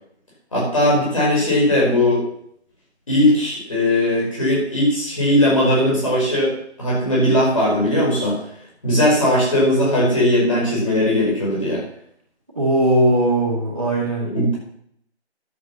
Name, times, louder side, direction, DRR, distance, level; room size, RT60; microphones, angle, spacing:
voice 1, 0.5-2.2 3.1-6.5 6.8-8.4 8.8-11.8 14.2-14.6, left 1 dB, 30° left, -5 dB, 5.2 m, -18 dB
voice 2, 12.6-14.3, right 1 dB, 20° right, -9 dB, 1.9 m, -19 dB
11.0 x 7.5 x 5.9 m, 0.69 s
figure-of-eight pair, 175°, 34 cm